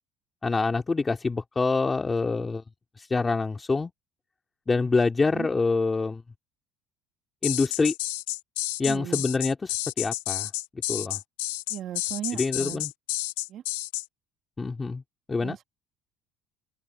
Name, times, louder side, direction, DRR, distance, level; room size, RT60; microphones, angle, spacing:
voice 1, 0.4-2.6 3.0-3.9 4.7-6.2 7.4-7.9 8.8-10.5 10.9-11.2 12.3-12.9 14.6-15.0 15.3-15.6, left 3 dB, 20° left, 2.4 m, -26 dB
sound 1, 7.4-14.1, left 19 dB, 90° left, 1.0 m, -31 dB
voice 2, 8.8-9.2 11.7-12.8 13.5-13.6 15.4-15.6, right 11 dB, 55° right, 2.1 m, -36 dB
open air
supercardioid pair, 90°, 0 cm